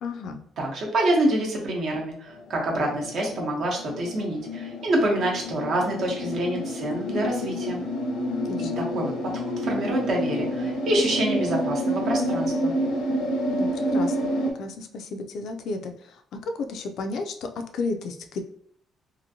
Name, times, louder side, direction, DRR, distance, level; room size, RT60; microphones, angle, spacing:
voice 1, 0.0-0.4 8.3-8.8 13.5-18.4, left 3 dB, 55° left, 6 dB, 0.3 m, -33 dB
voice 2, 0.6-7.8 8.6-12.7, right 1 dB, 50° right, -1 dB, 0.8 m, -27 dB
sound 1, 2.7-14.5, equal, 90° left, 0.7 m, -28 dB
2.8 x 2.5 x 2.7 m, 0.64 s
cardioid pair, 165°, 0 cm